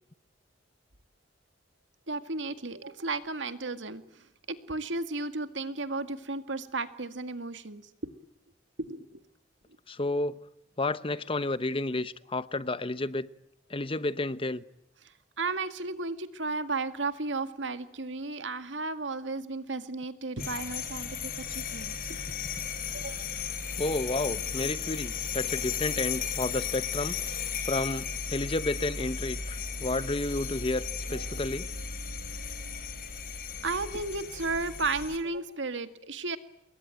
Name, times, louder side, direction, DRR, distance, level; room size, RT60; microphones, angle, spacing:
voice 1, 2.1-8.1 8.8-9.2 15.4-22.2 22.9-23.3 31.1-31.4 33.6-36.4, right 3 dB, 90° right, 2.0 m, -34 dB
voice 2, 9.9-10.4 10.8-13.3 13.7-14.6 23.8-27.1 27.6-31.7, left 2 dB, 30° left, 0.9 m, -31 dB
sound 1, 20.4-35.2, left 6 dB, 50° left, 4.5 m, -35 dB
28.5 x 21.5 x 9.2 m
head